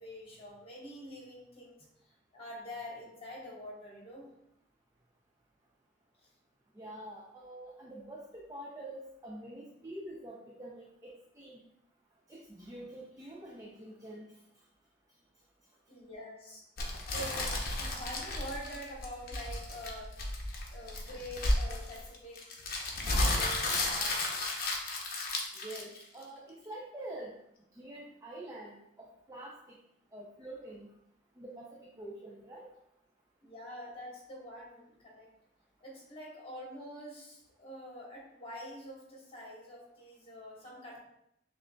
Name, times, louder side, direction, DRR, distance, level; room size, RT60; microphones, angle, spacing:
voice 1, 0.0-1.8 2.3-4.3 15.9-16.6 17.0-20.1 20.7-22.4 22.9-24.4 33.4-35.3 35.8-41.0, equal, 30° left, -3 dB, 1.2 m, -45 dB
voice 2, 6.8-11.6 12.3-14.3 25.6-27.3 27.8-29.8 30.1-30.9 31.4-32.7, right 1 dB, 20° right, -3 dB, 0.4 m, -46 dB
sound 1, 16.8-26.2, left 2 dB, 50° left, 0.7 m, -33 dB
6.2 x 2.5 x 2.2 m, 0.77 s
head